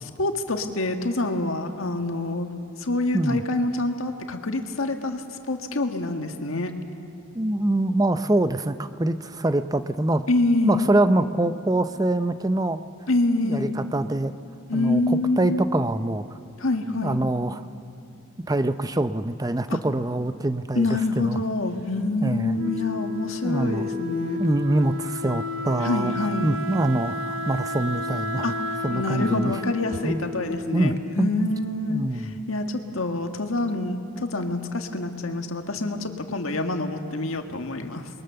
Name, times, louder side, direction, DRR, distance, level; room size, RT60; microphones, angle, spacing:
voice 1, 0.2-2.5 2.8-6.7 10.3-10.9 13.1-13.8 14.7-15.6 16.6-17.2 19.7-19.8 20.7-24.4 25.8-26.5 28.4-28.5 28.9-32.0 32.5-38.1, left 2 dB, 90° left, 5 dB, 1.7 m, -26 dB
voice 2, 7.3-10.2 10.6-12.8 13.4-14.3 14.7-16.2 17.0-17.6 18.5-21.4 22.2-22.6 23.4-23.9 24.4-28.5 28.8-29.6 30.0-30.2 30.7-31.5 31.9-32.3, right 1 dB, 20° right, 11 dB, 0.6 m, -24 dB
Wind instrument woodwind instrument, 22.5-31.3, left 2 dB, 85° right, 1.0 m, -32 dB
28.5 x 22.0 x 6.9 m, 2.7 s
head